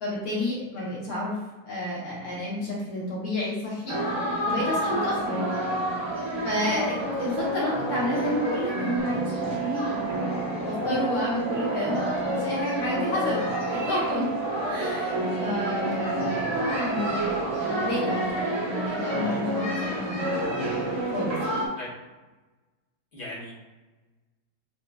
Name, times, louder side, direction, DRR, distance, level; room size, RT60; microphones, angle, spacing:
voice 1, 0.0-1.4 1.6-4.0 4.5-5.4 6.4-10.1 10.6-12.0 12.3-13.4 13.7-14.3 14.7-17.4 17.7-20.5 21.1-21.6, left 1 dB, 65° left, -6 dB, 1.4 m, -30 dB
sound 1, 3.9-21.7, right 1 dB, 30° right, 0.5 m, -29 dB
sound 2, 9.0-18.3, right 5 dB, 55° right, 1.0 m, -35 dB
voice 2, 23.1-23.5, left 1 dB, 40° left, -6 dB, 0.9 m, -40 dB
6.1 x 2.2 x 2.2 m, 1.2 s
omnidirectional pair, 1.9 m